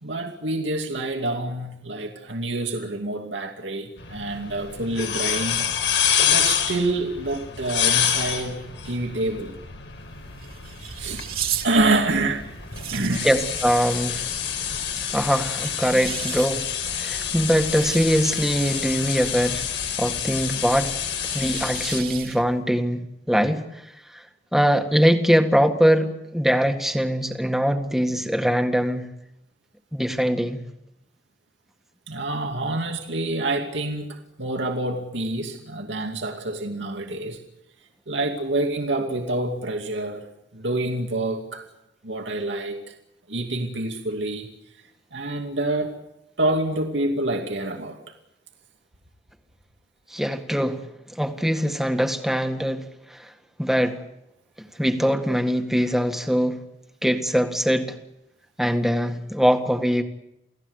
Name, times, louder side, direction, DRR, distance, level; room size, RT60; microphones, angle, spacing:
voice 1, 0.0-5.7 6.2-9.6 11.0-11.3 11.6-12.5 12.9-13.3 32.1-37.4 38.1-40.3 40.5-41.7 42.0-42.9 43.3-44.5 45.1-46.0 46.4-48.1, right 2 dB, 90° right, 2 dB, 2.6 m, -27 dB
sound 1, 4.0-22.0, left 8 dB, 85° left, 4.9 m, -28 dB
sound 2, 9.9-22.6, right 8 dB, 50° right, 2.4 m, -37 dB
voice 2, 13.2-14.3 15.1-16.6 16.9-19.7 20.0-20.9 21.3-23.6 24.1-24.2 24.5-29.1 29.9-30.6 50.1-50.8 51.2-52.8 53.1-53.3 53.6-54.0 54.8-56.6 57.0-58.0 58.6-60.0, equal, ahead, 6 dB, 1.8 m, -22 dB
29.5 x 17.5 x 8.1 m, 0.85 s
head